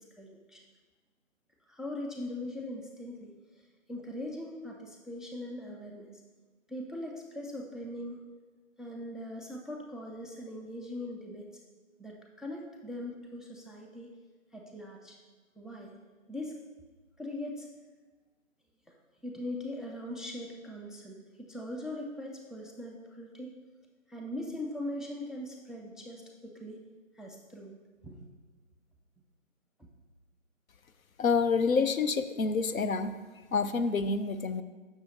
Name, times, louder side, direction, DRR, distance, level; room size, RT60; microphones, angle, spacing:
voice 1, 0.2-0.6 1.7-6.2 6.7-8.2 8.8-11.5 12.0-14.1 14.5-15.2 15.6-15.9 16.3-16.6 17.2-17.7 18.9-19.0 19.2-23.5 24.1-26.8 27.2-27.7 28.0-28.2, left 1 dB, ahead, 0 dB, 0.4 m, -41 dB
voice 2, 31.2-33.1 33.5-34.6, left 4 dB, 90° left, 10 dB, 0.5 m, -28 dB
7.6 x 6.2 x 2.6 m, 1.3 s
figure-of-eight pair, 170°, 40 cm